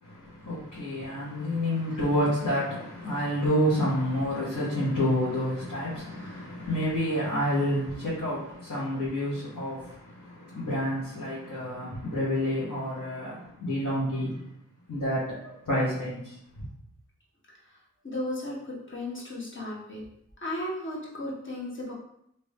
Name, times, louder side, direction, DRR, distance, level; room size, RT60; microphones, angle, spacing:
voice 1, 0.0-14.5 14.9-16.7, equal, 65° left, 1.4 m, -29 dB
voice 2, 18.0-20.0 20.4-21.9, left 1 dB, 40° left, 1.3 m, -35 dB
3.3 x 2.9 x 3.2 m
cardioid pair, 45°, 32 cm